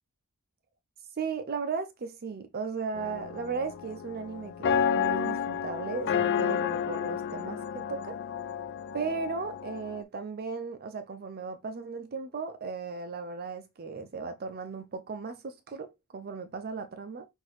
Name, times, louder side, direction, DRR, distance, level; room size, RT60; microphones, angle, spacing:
voice 1, 1.2-8.2 8.9-17.3, right 5 dB, 45° right, 0.5 m, -36 dB
sound 1, 2.9-10.0, left 7 dB, 50° left, 0.3 m, -31 dB
5.8 x 2.6 x 3.1 m
head